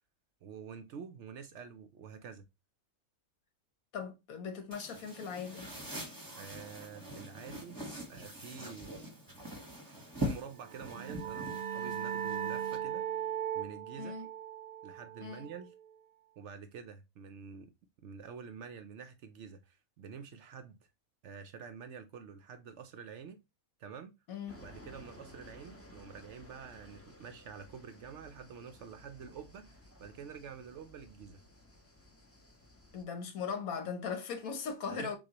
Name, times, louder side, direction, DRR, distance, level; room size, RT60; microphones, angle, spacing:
voice 1, 0.4-2.5 6.3-7.8 8.1-9.0 10.2-13.0 13.5-14.2 14.8-15.7 16.4-17.7 18.0-20.8 21.2-23.4 23.8-24.1 24.6-31.4 34.9-35.2, right 6 dB, 65° right, 0.8 m, -48 dB
voice 2, 3.9-5.7 14.0-14.3 15.2-15.5 24.3-24.5 32.9-35.2, left 6 dB, 75° left, 1.3 m, -39 dB
sound 1, 4.7-12.8, equal, 15° right, 1.0 m, -43 dB
sound 2, 10.6-16.0, right 9 dB, 90° right, 1.1 m, -38 dB
sound 3, 24.5-33.0, left 1 dB, 15° left, 0.6 m, -56 dB
6.1 x 2.4 x 2.9 m
omnidirectional pair, 1.5 m